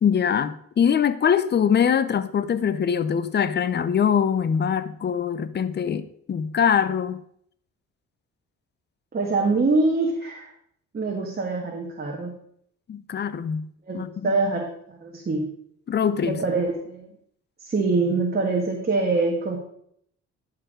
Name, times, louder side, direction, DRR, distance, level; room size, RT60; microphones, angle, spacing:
voice 1, 0.0-7.2 12.9-13.7 13.9-14.3 15.9-16.4, left 7 dB, 35° left, 0.6 m, -23 dB
voice 2, 9.1-10.5 10.9-12.3 13.8-15.5 16.2-17.1 17.6-19.6, right 3 dB, 30° right, 1.5 m, -24 dB
11.0 x 4.7 x 5.0 m
cardioid pair, 90°, 30 cm